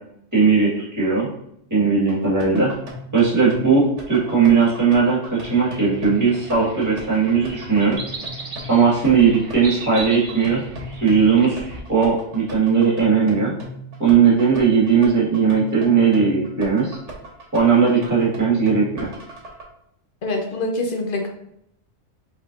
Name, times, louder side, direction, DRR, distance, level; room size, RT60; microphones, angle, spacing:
voice 1, 0.3-1.3 1.7-2.7 3.1-8.0 8.7-10.6 11.0-11.6 11.9-13.5 14.0-17.0 17.5-19.1, right 5 dB, 15° right, -7 dB, 1.7 m, -18 dB
sound 1, 2.1-19.6, equal, 75° right, 1.3 m, -38 dB
sound 2, 5.5-11.8, right 3 dB, 40° right, 0.5 m, -37 dB
voice 2, 20.2-21.3, left 2 dB, 50° left, 2 dB, 0.9 m, -25 dB
5.4 x 3.7 x 2.5 m, 0.75 s
omnidirectional pair, 1.3 m